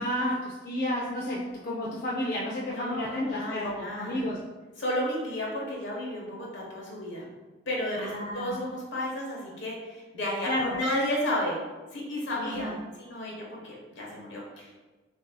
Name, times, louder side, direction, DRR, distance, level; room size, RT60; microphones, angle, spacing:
voice 1, 0.0-4.4 8.0-8.6 10.5-10.8 12.4-12.8, left 1 dB, 45° left, -4 dB, 0.4 m, -31 dB
voice 2, 2.7-4.3 4.8-7.2 7.7-11.6 11.9-14.7, left 1 dB, 65° left, -3 dB, 1.1 m, -32 dB
6.1 x 2.6 x 2.2 m, 1.3 s
head